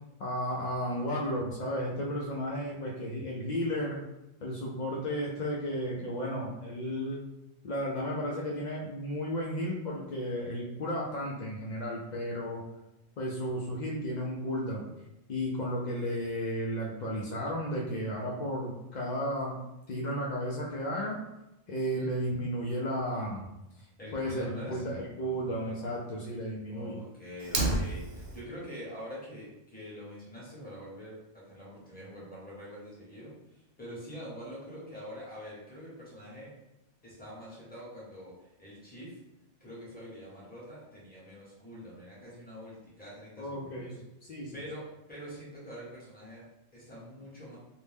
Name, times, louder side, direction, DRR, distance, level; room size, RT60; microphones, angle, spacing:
voice 1, 0.2-4.0 4.4-7.2 7.6-12.6 13.2-14.9 15.3-19.6 19.9-21.2 21.7-23.5 24.1-27.0 43.4-44.6, equal, 90° left, -3 dB, 0.4 m, -33 dB
voice 2, 24.0-24.8 26.7-36.5 37.0-39.2 39.6-44.0 44.3-47.6, equal, 10° left, -7 dB, 0.8 m, -45 dB
Fire, 27.4-28.4, right 2 dB, 60° right, 0.7 m, -30 dB
2.6 x 2.1 x 3.3 m, 0.90 s
omnidirectional pair, 1.3 m